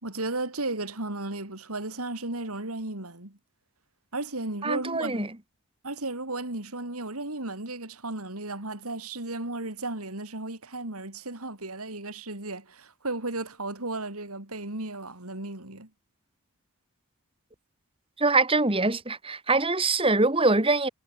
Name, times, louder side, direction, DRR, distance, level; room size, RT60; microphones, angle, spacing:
voice 1, 0.0-3.4 4.1-5.3 5.8-15.9, right 2 dB, 80° right, 4.5 m, -34 dB
voice 2, 4.6-5.3 18.2-20.9, right 3 dB, 25° right, 2.3 m, -23 dB
head